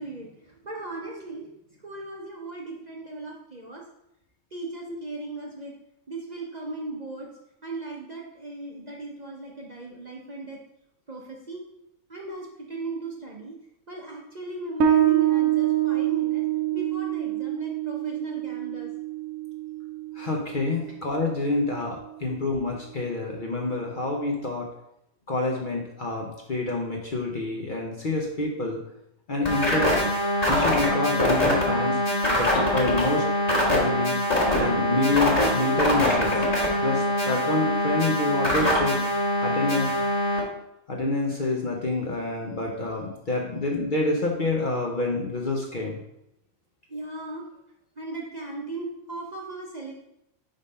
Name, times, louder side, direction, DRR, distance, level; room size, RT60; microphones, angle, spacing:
voice 1, 0.0-1.5 1.8-3.8 4.5-5.7 6.1-7.3 7.6-10.6 11.1-11.6 12.1-13.6 13.9-16.4 16.7-18.9 46.9-47.4 48.0-49.9, right 2 dB, 40° right, -2 dB, 0.7 m, -37 dB
Bass guitar, 14.8-22.0, right 12 dB, 75° right, 1.1 m, -26 dB
voice 2, 20.2-24.7 25.3-28.8 29.3-30.0 30.5-32.0 32.3-33.2 33.6-34.1 34.5-36.5 36.8-39.0 39.4-39.9 40.9-46.0, left 2 dB, 45° left, 0 dB, 0.8 m, -27 dB
sound 1, 29.4-40.4, left 1 dB, 30° left, 1.6 m, -23 dB
5.1 x 3.5 x 5.4 m, 0.82 s
omnidirectional pair, 1.5 m